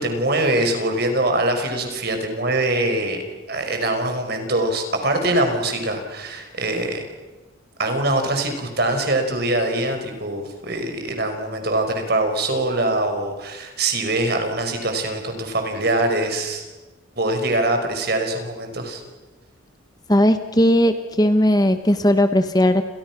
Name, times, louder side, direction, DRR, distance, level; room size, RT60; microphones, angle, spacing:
voice 1, 0.0-3.2 3.5-7.1 7.8-16.6 17.2-19.0, right 2 dB, 50° right, 5 dB, 5.4 m, -23 dB
voice 2, 20.1-22.8, left 1 dB, 20° left, 8 dB, 1.2 m, -17 dB
30.0 x 30.0 x 6.1 m, 1.2 s
head